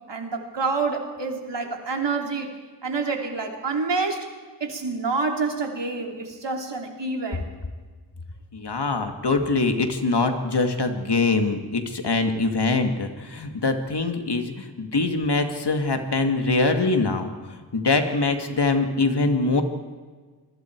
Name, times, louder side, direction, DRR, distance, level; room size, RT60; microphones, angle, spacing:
voice 1, 0.1-2.5 2.8-4.3 4.6-7.4 8.9-9.1, right 4 dB, 85° right, 2 dB, 3.1 m, -27 dB
voice 2, 8.5-17.3 17.7-19.6, left 3 dB, 70° left, 5 dB, 2.3 m, -23 dB
27.5 x 21.0 x 4.7 m, 1.5 s
wide cardioid pair, 70°, 42 cm